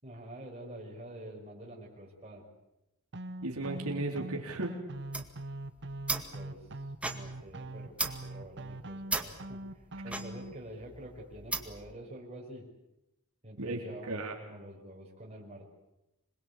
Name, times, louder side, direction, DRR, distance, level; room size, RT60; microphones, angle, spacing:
voice 1, 0.0-2.4 6.3-6.7 7.0-12.6 13.4-15.7, right 1 dB, 30° right, -1 dB, 6.1 m, -47 dB
sound 1, 3.1-10.5, right 1 dB, 55° right, 1.3 m, -42 dB
voice 2, 3.4-4.7 13.6-14.4, right 2 dB, 75° right, 0 dB, 3.9 m, -35 dB
sound 2, 4.9-11.9, right 2 dB, 5° right, 2.0 m, -38 dB
26.5 x 22.0 x 8.5 m, 0.89 s
head